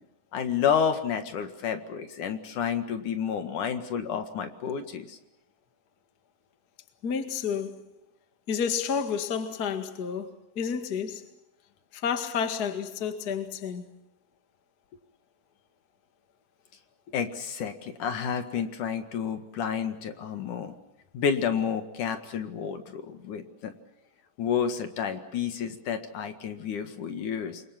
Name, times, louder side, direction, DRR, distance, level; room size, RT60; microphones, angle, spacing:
voice 1, 0.3-5.2 17.1-20.7 21.1-23.7 24.4-27.6, left 7 dB, 65° left, 3.2 m, -30 dB
voice 2, 7.0-7.8 8.5-11.2 11.9-13.8, left 7 dB, 35° left, 2.0 m, -30 dB
29.0 x 23.5 x 6.0 m
omnidirectional pair, 4.0 m